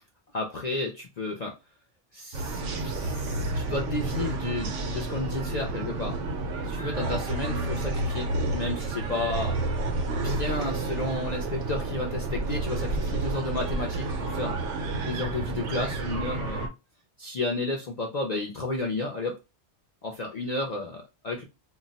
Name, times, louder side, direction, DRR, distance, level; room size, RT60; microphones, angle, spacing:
voice 1, 0.3-1.5 2.1-6.2 6.6-9.6 10.1-14.6 15.0-16.7 17.2-19.4 20.0-21.4, left 2 dB, 60° left, 0 dB, 0.4 m, -32 dB
sound 1, 2.3-16.7, right 2 dB, 90° right, 1.0 m, -30 dB
2.3 x 2.0 x 3.8 m, 0.27 s
omnidirectional pair, 1.2 m